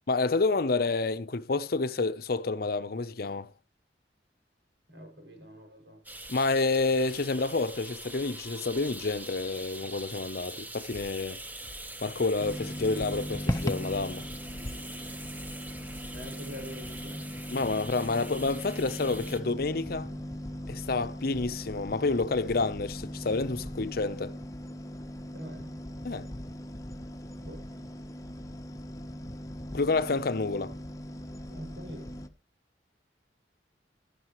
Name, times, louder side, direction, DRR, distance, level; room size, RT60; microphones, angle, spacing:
voice 1, 0.1-3.5 6.3-11.4 12.0-14.3 17.5-20.1 20.7-24.4 26.0-26.3 29.7-30.8, left 3 dB, 55° left, 0.7 m, -29 dB
voice 2, 4.9-6.0 14.8-14.9 16.1-17.4 25.3-25.9 27.4-27.8 31.5-32.2, equal, 75° right, 6.0 m, -45 dB
sound 1, 6.0-19.4, right 1 dB, 10° right, 1.1 m, -44 dB
sound 2, 10.9-24.3, equal, 40° right, 6.8 m, -53 dB
sound 3, 12.4-32.3, equal, 20° left, 0.9 m, -39 dB
15.5 x 12.0 x 3.1 m
head